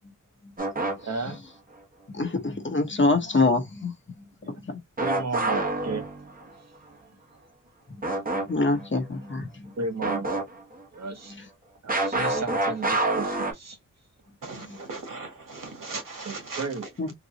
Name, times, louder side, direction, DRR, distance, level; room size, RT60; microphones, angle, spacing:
sound 1, 0.6-1.4 5.0-6.5 8.0-8.5 8.8-8.9 10.0-10.8 11.9-13.5, right 2 dB, 25° right, 0.8 m, -27 dB
voice 1, 1.0-1.4 5.0-6.1 9.8-10.5 10.9-11.3 11.8-13.8 16.3-16.9, right 3 dB, 55° right, 1.0 m, -33 dB
voice 2, 2.1-4.8 7.9-8.1 8.3-9.8 11.3-11.5 12.1-12.3 14.7-14.8 17.0-17.1, left 3 dB, 35° left, 1.0 m, -27 dB
voice 3, 14.4-16.9, right 3 dB, 90° right, 1.7 m, -38 dB
3.9 x 2.2 x 2.8 m
wide cardioid pair, 105°, 32 cm